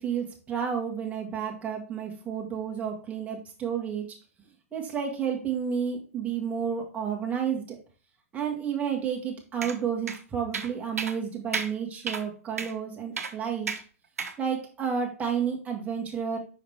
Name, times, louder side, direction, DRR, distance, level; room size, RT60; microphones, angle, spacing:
voice 1, 0.0-4.1 4.7-7.8 8.3-13.7 14.4-16.4, right 7 dB, 15° right, 0 dB, 1.6 m, -31 dB
sound 1, 9.6-9.8 10.1-10.2 10.5-10.7 11.0-11.2 11.5-11.7 12.1-12.2 12.6-12.7 13.2-13.3 13.7-13.8 14.2-14.4, right 5 dB, 90° right, 0.9 m, -32 dB
5.7 x 4.8 x 3.5 m, 0.36 s
hypercardioid pair, 130°, 8 cm